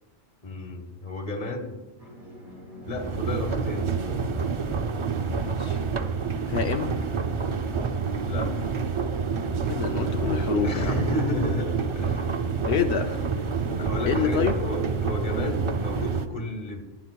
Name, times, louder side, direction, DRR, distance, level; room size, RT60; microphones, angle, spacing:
voice 1, 0.4-1.8 2.9-4.5 8.3-8.7 10.6-12.3 13.8-16.8, left 2 dB, 35° left, 6 dB, 1.2 m, -32 dB
sound 1, 2.0-16.1, left 1 dB, 80° right, 3.4 m, -40 dB
sound 2, 2.9-16.3, right 5 dB, 45° right, 0.4 m, -28 dB
voice 2, 5.2-5.8 6.5-7.0 9.7-11.0 12.6-13.3 14.0-14.6, left 8 dB, 75° left, 5 dB, 0.9 m, -27 dB
17.0 x 9.7 x 2.2 m, 1.1 s
omnidirectional pair, 1.1 m